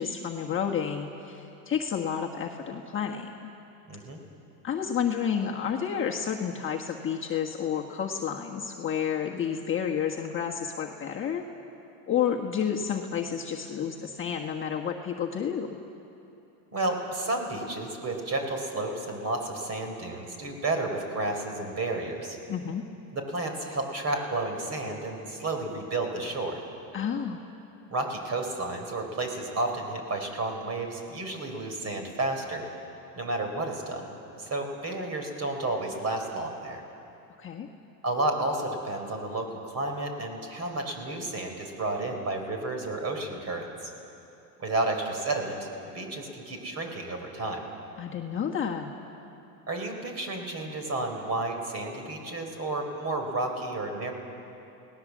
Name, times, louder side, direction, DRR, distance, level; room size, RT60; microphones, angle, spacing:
voice 1, 0.0-3.5 4.6-11.5 12.1-15.8 22.5-22.8 26.9-27.4 37.4-37.7 48.0-48.9, left 8 dB, 25° left, -1 dB, 1.5 m, -30 dB
voice 2, 3.9-4.2 16.7-22.4 23.1-26.6 27.9-32.7 33.1-36.8 38.0-43.9 44.6-45.6 45.8-47.6 49.7-54.1, right 2 dB, 35° right, 4 dB, 4.5 m, -31 dB
28.5 x 18.5 x 7.5 m, 2.9 s
supercardioid pair, 120°, 46 cm